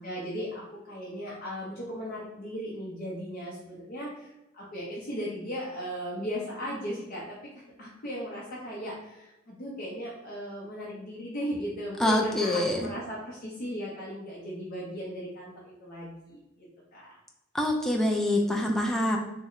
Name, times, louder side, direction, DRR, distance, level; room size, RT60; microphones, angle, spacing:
voice 1, 0.0-7.4 7.8-16.4 16.9-17.2, equal, 45° left, -6 dB, 0.6 m, -37 dB
voice 2, 12.0-12.9 17.5-19.2, left 1 dB, ahead, 0 dB, 0.3 m, -25 dB
3.1 x 2.1 x 3.7 m, 0.95 s
head